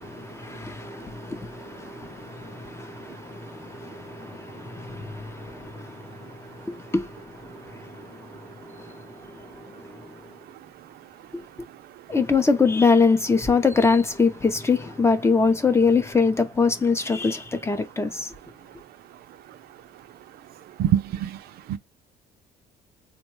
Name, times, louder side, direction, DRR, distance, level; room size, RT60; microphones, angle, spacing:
voice 1, 0.0-10.2 11.3-11.4 12.1-18.3, left 4 dB, 15° left, 0.5 m, -24 dB
voice 2, 20.8-21.4 21.7-21.8, right 10 dB, 65° right, 0.5 m, -23 dB
3.7 x 2.2 x 3.0 m
cardioid pair, 110°, 17 cm